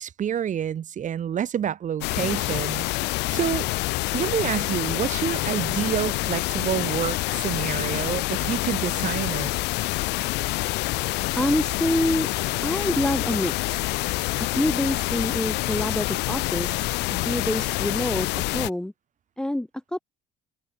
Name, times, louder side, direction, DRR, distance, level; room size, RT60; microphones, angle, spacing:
voice 1, 0.0-2.9 3.3-3.7 4.1-9.5, right 9 dB, 50° right, 2.0 m, -28 dB
sound 1, 2.0-18.7, left 21 dB, 90° left, 0.8 m, -27 dB
voice 2, 11.4-12.3 12.6-13.9 14.4-16.8 17.2-18.9 19.4-20.0, left 1 dB, 5° left, 0.7 m, -26 dB
cardioid pair, 110°, 17 cm